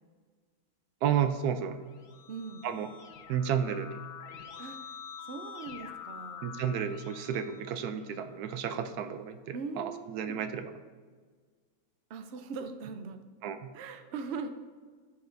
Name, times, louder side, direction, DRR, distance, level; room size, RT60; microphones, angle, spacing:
voice 1, 1.0-1.8 2.6-2.9 3.3-4.1 6.4-10.7 13.4-13.7, right 8 dB, 85° right, 9 dB, 1.2 m, -32 dB
Keyboard (musical), 1.7-8.3, left 8 dB, 85° left, 1.4 m, -47 dB
voice 2, 2.3-2.7 4.6-4.9 5.2-6.6 9.5-10.4 12.1-13.2 13.7-14.5, right 4 dB, 55° right, 8 dB, 0.8 m, -40 dB
14.5 x 5.6 x 2.7 m, 1.5 s
omnidirectional pair, 1.6 m